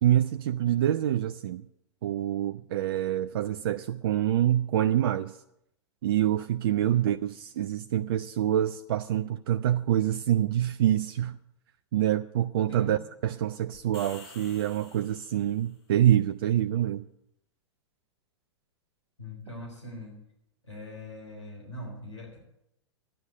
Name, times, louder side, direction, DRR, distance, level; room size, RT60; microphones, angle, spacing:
voice 1, 0.0-1.6 2.0-5.3 6.0-11.4 11.9-17.0, right 11 dB, 50° right, 0.5 m, -26 dB
voice 2, 12.7-13.0 19.2-20.2 20.6-22.4, equal, 80° left, 3.8 m, -41 dB
sound 1, 13.7-15.7, left 3 dB, 60° left, 4.4 m, -50 dB
12.0 x 9.7 x 8.0 m
figure-of-eight pair, 100°, 15 cm